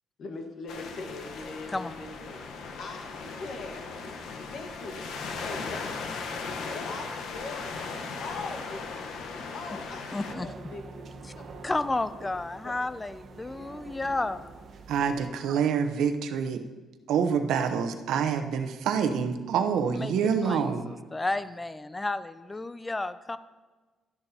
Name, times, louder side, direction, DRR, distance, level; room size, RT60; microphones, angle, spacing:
voice 1, 0.2-2.5 2.8-4.0 4.4-6.2 6.7-7.9 8.2-9.2 9.5-11.7, left 3 dB, 50° left, 4 dB, 1.3 m, -41 dB
sound 1, 0.7-10.3, left 4 dB, 75° left, 1.0 m, -38 dB
voice 2, 10.1-10.5 11.6-14.5 19.9-20.1 20.4-23.4, left 2 dB, 15° left, 14 dB, 0.3 m, -32 dB
sound 2, 10.3-15.3, right 3 dB, 50° right, 0.8 m, -46 dB
voice 3, 14.9-16.6 17.1-20.9, right 7 dB, 85° right, 6 dB, 0.8 m, -26 dB
12.5 x 11.0 x 2.8 m, 1.3 s
cardioid pair, 160°, 0 cm